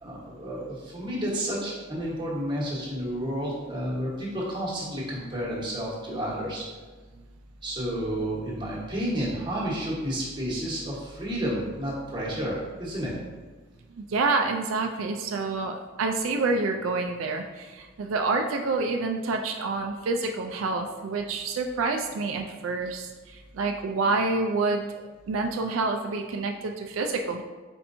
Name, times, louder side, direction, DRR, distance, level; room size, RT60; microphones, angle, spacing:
voice 1, 0.0-6.6 7.6-13.2, equal, 25° right, -6 dB, 1.1 m, -31 dB
voice 2, 14.0-27.4, right 3 dB, 85° right, 4 dB, 0.4 m, -28 dB
4.4 x 4.3 x 2.6 m, 1.3 s
head